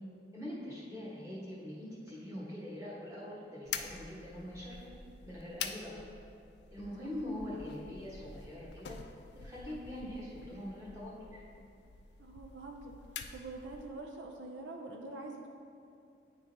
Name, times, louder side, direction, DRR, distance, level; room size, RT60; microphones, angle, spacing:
voice 1, 0.3-4.7 5.2-6.0 6.7-9.0 9.3-11.4, left 1 dB, 15° right, -7 dB, 1.3 m, -43 dB
sound 1, 3.7-14.0, left 6 dB, 65° left, 0.4 m, -47 dB
voice 2, 12.2-12.9 13.3-15.5, right 2 dB, 80° right, 2 dB, 0.5 m, -45 dB
9.5 x 3.7 x 2.8 m, 2.5 s
head